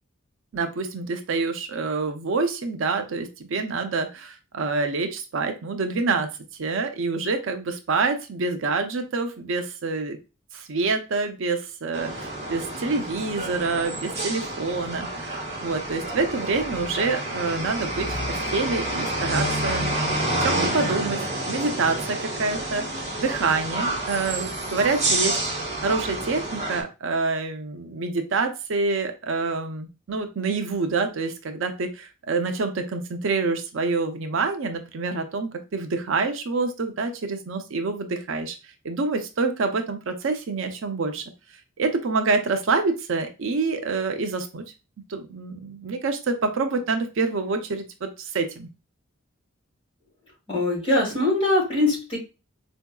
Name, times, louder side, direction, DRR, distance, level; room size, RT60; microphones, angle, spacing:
voice 1, 0.5-6.3 6.6-10.2 10.5-19.9 20.3-25.4 25.8-38.6 38.8-41.2 41.8-44.6 45.1-48.7, right 4 dB, 65° right, 6 dB, 0.5 m, -27 dB
sound 1, 11.9-26.8, right 1 dB, 35° right, 1.1 m, -29 dB
voice 2, 50.5-52.2, left 2 dB, 30° left, -3 dB, 2.1 m, -22 dB
4.5 x 2.6 x 2.2 m, 0.28 s
head